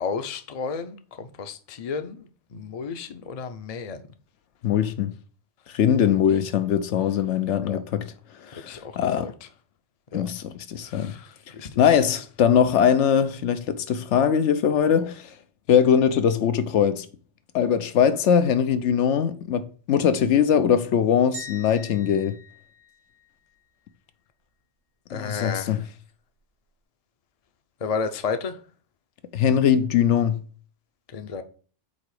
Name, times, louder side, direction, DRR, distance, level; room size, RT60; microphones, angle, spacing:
voice 1, 0.0-4.0 7.7-7.8 8.7-9.3 10.1-10.2 10.9-11.8 14.9-15.1 25.1-25.8 27.8-28.6 31.1-31.4, left 5 dB, 40° left, 0.6 m, -32 dB
voice 2, 4.6-5.1 5.7-9.3 10.1-11.2 11.8-15.4 15.7-17.1 17.5-22.4 25.1-25.9 29.3-30.4, left 8 dB, 80° left, 1.0 m, -21 dB
sound 1, 21.3-23.6, left 1 dB, 70° right, 1.6 m, -43 dB
8.2 x 3.0 x 4.8 m
omnidirectional pair, 1.2 m